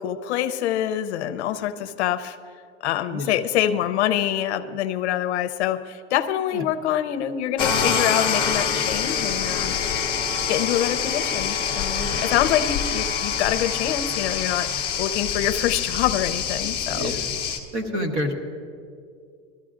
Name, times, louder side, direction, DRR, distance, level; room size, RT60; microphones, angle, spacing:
voice 1, 0.0-2.4 2.8-9.7 10.4-17.0, left 11 dB, 65° left, 9 dB, 0.7 m, -25 dB
voice 2, 3.1-3.4 6.5-6.6 11.9-12.3 16.8-17.3 17.7-18.3, equal, 35° right, 4 dB, 1.1 m, -29 dB
sound 1, 7.6-17.6, left 7 dB, 15° left, 0.8 m, -25 dB
21.0 x 14.0 x 2.5 m, 2.2 s
supercardioid pair, 170°, 35 cm